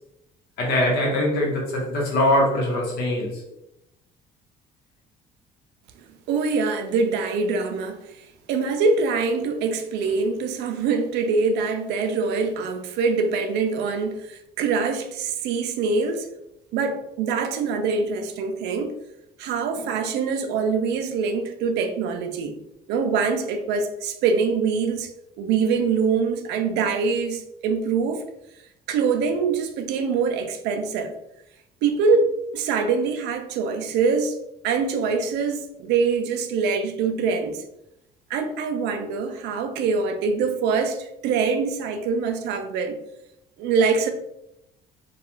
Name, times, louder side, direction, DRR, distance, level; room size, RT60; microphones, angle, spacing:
voice 1, 0.6-3.4, left 1 dB, 75° left, -1 dB, 0.9 m, -22 dB
voice 2, 6.3-8.0 8.5-16.3 16.7-19.0 19.4-22.5 22.9-25.1 25.4-28.2 28.9-31.1 31.8-34.4 34.6-37.6 38.3-43.0 43.6-44.1, right 5 dB, 85° right, 6 dB, 0.4 m, -24 dB
2.3 x 2.3 x 2.9 m, 0.84 s
cardioid pair, 110°, 17 cm